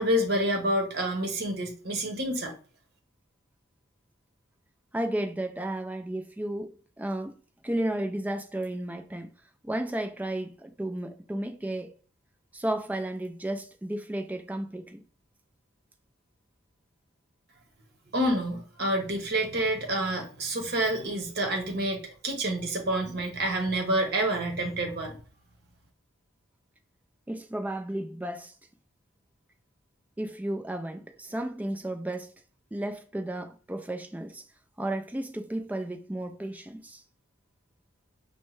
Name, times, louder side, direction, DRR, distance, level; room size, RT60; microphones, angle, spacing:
voice 1, 0.0-2.5 18.1-25.2, right 1 dB, 55° right, 1.0 m, -28 dB
voice 2, 4.9-7.4 7.6-9.3 9.6-11.9 12.5-15.0 27.3-28.5 30.2-32.3 32.7-34.4 34.8-37.0, right 1 dB, 10° right, 0.3 m, -33 dB
5.3 x 2.1 x 3.1 m
head